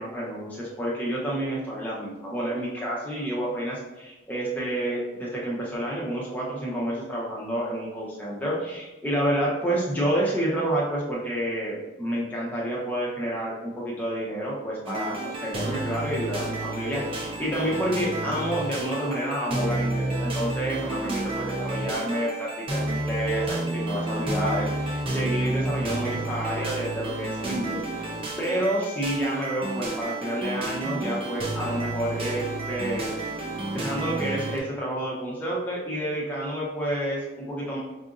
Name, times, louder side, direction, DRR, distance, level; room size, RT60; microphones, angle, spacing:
voice 1, 0.0-28.1 28.4-33.1 33.7-37.8, right 1 dB, 10° left, -5 dB, 0.8 m, -29 dB
sound 1, 14.9-34.6, right 2 dB, 30° right, 0.4 m, -31 dB
4.8 x 2.5 x 2.5 m, 1.1 s
head